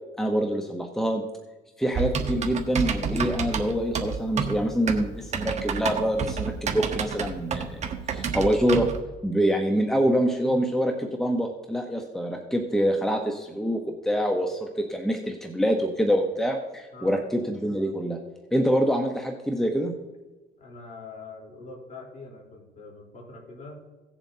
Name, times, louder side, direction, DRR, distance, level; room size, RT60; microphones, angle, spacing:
voice 1, 0.2-1.2 1.8-8.9 9.2-18.2 18.5-20.0, equal, ahead, 3 dB, 0.9 m, -25 dB
Typing, 1.9-9.0, right 6 dB, 40° right, 1.2 m, -29 dB
voice 2, 16.9-17.2 20.6-23.8, left 3 dB, 45° left, -1 dB, 3.8 m, -43 dB
17.5 x 7.3 x 2.8 m, 1.2 s
cardioid pair, 110°, 17 cm